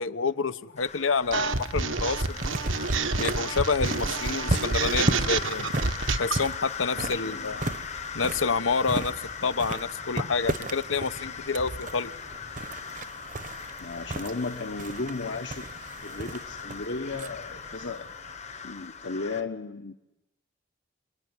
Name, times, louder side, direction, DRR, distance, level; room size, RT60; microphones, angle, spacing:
voice 1, 0.0-2.6 3.2-5.7 6.2-7.7 8.1-9.1 9.4-12.1, left 4 dB, 90° left, 1.0 m, -28 dB
sound 1, 0.8-19.4, left 6 dB, 35° left, 0.9 m, -40 dB
sound 2, 1.2-18.8, right 2 dB, 40° right, 0.9 m, -36 dB
sound 3, 1.3-6.5, right 3 dB, 85° right, 1.3 m, -28 dB
voice 2, 6.9-7.5 13.8-15.7 16.0-18.1 18.6-19.9, left 3 dB, 65° left, 1.2 m, -35 dB
27.5 x 21.5 x 9.8 m
head